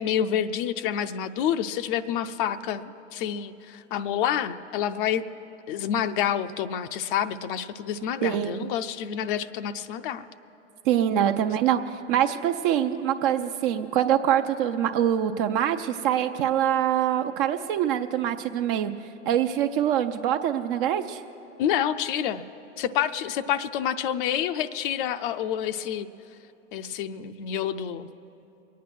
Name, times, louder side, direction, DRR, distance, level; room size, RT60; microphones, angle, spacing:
voice 1, 0.0-5.2 5.7-10.2 11.1-11.3 21.6-22.4 22.8-26.1 26.7-28.1, left 9 dB, 45° left, 11 dB, 0.5 m, -28 dB
voice 2, 8.2-8.6 10.9-11.8 12.1-18.9 19.3-21.2, right 10 dB, 50° right, 7 dB, 0.6 m, -24 dB
23.0 x 9.3 x 6.1 m, 3.0 s
hypercardioid pair, 115°, 37 cm